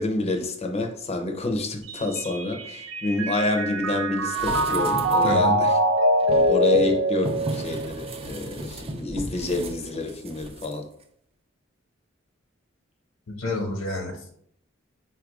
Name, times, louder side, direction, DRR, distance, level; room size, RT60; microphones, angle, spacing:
voice 1, 0.0-5.7 6.5-10.9, left 3 dB, 30° left, 5 dB, 0.6 m, -28 dB
Mallet percussion, 1.9-8.3, right 1 dB, 70° right, 0.6 m, -24 dB
sound 1, 4.3-5.6 6.2-10.7 11.0-11.1, right 1 dB, 30° right, 0.4 m, -35 dB
voice 2, 5.2-5.6 13.3-14.3, left 2 dB, 80° left, 3 dB, 1.0 m, -29 dB
4.3 x 2.4 x 4.7 m, 0.67 s
head